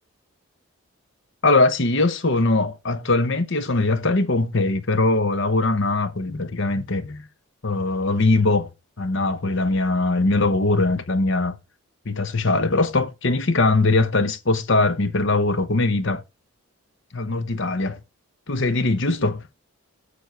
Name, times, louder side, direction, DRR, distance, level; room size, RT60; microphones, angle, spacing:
voice 1, 1.4-7.2 7.6-8.7 9.0-11.6 12.0-16.2 17.1-18.0 18.5-19.4, left 2 dB, 55° left, 1.0 m, -21 dB
9.0 x 6.9 x 4.7 m
head